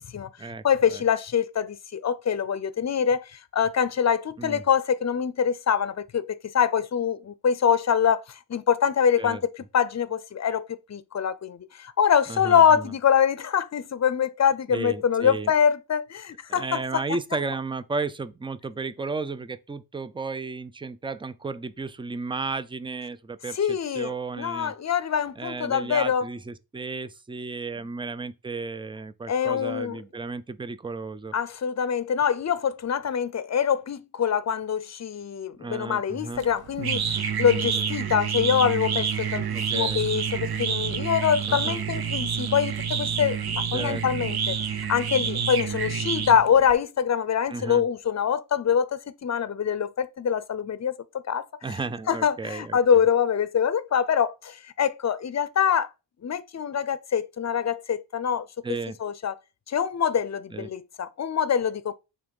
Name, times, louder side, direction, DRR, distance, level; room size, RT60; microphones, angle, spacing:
voice 1, 0.0-17.0 23.6-26.3 29.3-30.0 31.3-39.5 39.7-44.6 44.9-51.0 51.3-51.8 52.1-55.9 56.2-58.5 59.0-59.3 59.7-61.9, left 7 dB, 40° left, 0.6 m, -24 dB
voice 2, 12.3-12.9 14.7-15.5 16.5-24.7 25.4-31.3 35.6-36.5 37.7-37.9 39.5-40.1 41.5-41.8 43.7-44.0 47.5-47.8 51.6-52.8 58.6-59.0 60.5-60.7, right 4 dB, 10° right, 0.4 m, -33 dB
sound 1, 36.4-46.7, right 7 dB, 60° right, 0.9 m, -28 dB
7.1 x 3.2 x 5.2 m
wide cardioid pair, 120°, 43 cm